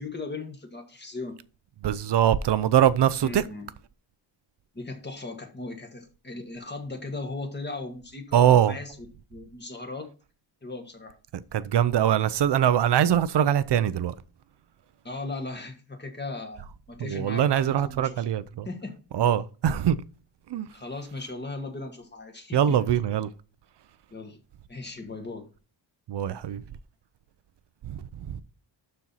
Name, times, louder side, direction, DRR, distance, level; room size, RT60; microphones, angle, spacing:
voice 1, 0.0-1.4 3.2-3.7 4.7-10.1 10.6-11.1 15.0-18.2 18.6-19.0 20.7-22.8 24.1-24.4 24.7-25.5, left 3 dB, 20° left, 1.5 m, -37 dB
voice 2, 1.8-3.4 8.3-8.8 11.3-14.1 17.0-18.7 19.1-20.0 20.5-20.7 22.5-23.3 26.1-26.6 27.9-28.4, right 10 dB, 60° right, 0.7 m, -23 dB
12.0 x 4.4 x 4.1 m
wide cardioid pair, 170°, 47 cm